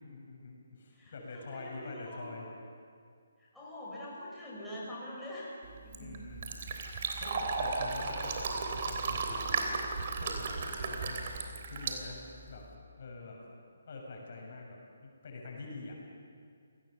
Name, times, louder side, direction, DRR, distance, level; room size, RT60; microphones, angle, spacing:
voice 1, 0.0-2.5 6.0-6.6 7.2-9.8 10.1-12.6 12.9-13.4 13.9-16.0, left 3 dB, 55° left, -1 dB, 7.1 m, -46 dB
voice 2, 0.9-2.3 3.4-6.2, left 1 dB, 5° left, -8 dB, 6.0 m, -45 dB
Fill (with liquid), 5.6-12.7, right 4 dB, 45° right, 3.5 m, -35 dB
28.0 x 19.5 x 7.0 m, 2.1 s
figure-of-eight pair, 145°, 0 cm